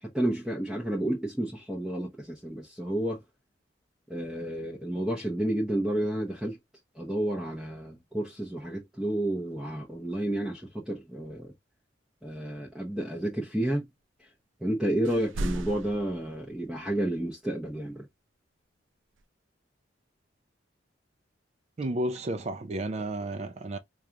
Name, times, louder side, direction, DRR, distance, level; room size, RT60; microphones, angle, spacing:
voice 1, 0.0-3.2 4.1-6.6 7.0-11.5 12.2-13.9 14.6-18.1, right 1 dB, 5° right, 0.7 m, -31 dB
sound 1, 15.0-16.7 19.2-19.3, right 1 dB, 85° right, 0.5 m, -35 dB
voice 2, 21.8-23.8, right 1 dB, 35° right, 0.4 m, -32 dB
4.7 x 2.4 x 2.8 m
head